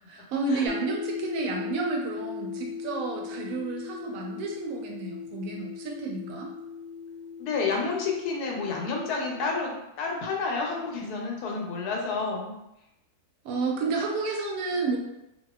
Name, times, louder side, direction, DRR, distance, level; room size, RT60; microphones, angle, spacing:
voice 1, 0.1-6.5 13.4-15.0, right 3 dB, 75° right, 0 dB, 1.0 m, -31 dB
sound 1, 0.7-9.5, left 5 dB, 60° left, 0.9 m, -38 dB
voice 2, 7.4-12.5, left 4 dB, 90° left, 0 dB, 1.1 m, -30 dB
2.7 x 2.3 x 2.2 m, 0.89 s
omnidirectional pair, 1.6 m